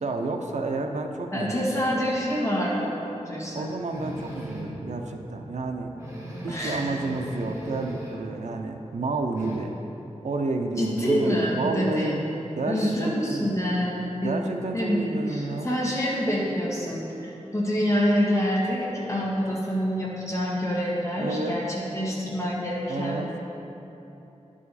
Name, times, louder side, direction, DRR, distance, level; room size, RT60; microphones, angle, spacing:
voice 1, 0.0-1.7 3.5-5.9 6.4-9.8 10.2-12.2 12.6-13.5 14.2-15.7 21.2-21.6 22.9-23.3, right 3 dB, 80° right, 4 dB, 0.6 m, -30 dB
voice 2, 1.3-3.7 6.5-6.8 10.8-12.2 12.7-14.3 14.7-15.0 15.3-23.2, equal, 25° left, -5 dB, 1.7 m, -26 dB
sound 1, 3.9-4.8 5.3-5.4 5.7-5.8 6.0-8.3 8.6-9.6, equal, 25° right, 1.5 m, -38 dB
10.5 x 5.0 x 4.1 m, 3.0 s
wide cardioid pair, 90°, 12 cm